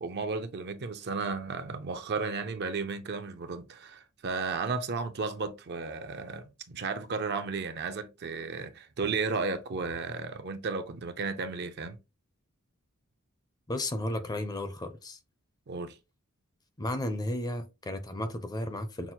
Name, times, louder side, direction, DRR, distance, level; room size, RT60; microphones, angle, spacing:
voice 1, 0.0-12.0 15.7-16.0, right 4 dB, 50° right, 0.5 m, -34 dB
voice 2, 13.7-15.2 16.8-19.1, left 1 dB, 20° left, 0.5 m, -33 dB
6.0 x 2.0 x 2.8 m
head